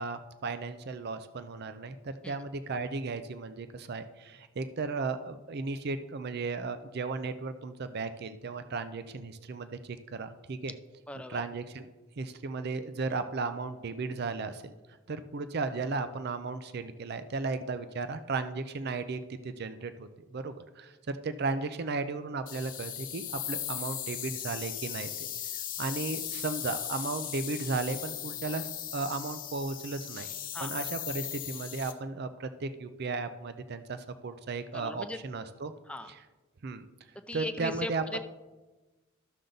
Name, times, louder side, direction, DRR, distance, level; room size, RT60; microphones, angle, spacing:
voice 1, 0.0-10.7 11.3-11.9 12.2-14.7 15.1-25.1 25.8-28.7 28.9-30.3 30.6-35.7 36.1-36.2 36.6-36.9 37.3-38.2, right 3 dB, 55° right, 11 dB, 0.5 m, -35 dB
voice 2, 11.1-11.4 30.5-30.7 34.7-35.2 35.9-36.1 37.3-38.2, left 1 dB, 5° left, 8 dB, 0.5 m, -38 dB
sound 1, 22.5-31.9, left 11 dB, 45° left, 0.9 m, -38 dB
13.0 x 6.6 x 3.9 m, 1.2 s
head